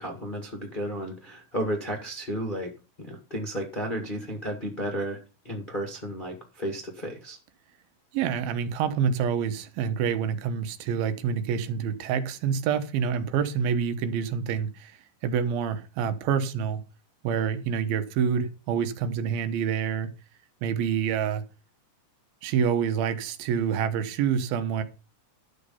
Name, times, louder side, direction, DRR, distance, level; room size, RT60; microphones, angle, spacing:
voice 1, 0.0-2.7 3.0-5.2 5.4-7.4, equal, 30° left, 1.0 m, -33 dB
voice 2, 8.1-15.0 15.2-16.8 17.2-20.1 20.6-21.4 22.4-24.8, right 7 dB, 90° right, 2.9 m, -27 dB
11.5 x 6.7 x 5.6 m
omnidirectional pair, 4.1 m